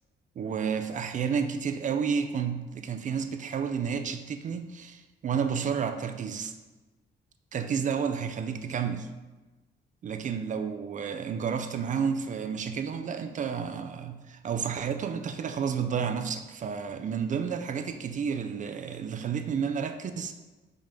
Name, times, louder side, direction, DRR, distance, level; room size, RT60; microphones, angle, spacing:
voice 1, 0.4-6.5 7.5-9.1 10.0-20.3, right 6 dB, 40° right, 8 dB, 0.4 m, -31 dB
5.6 x 3.6 x 5.1 m, 1.2 s
cardioid pair, 150°, 19 cm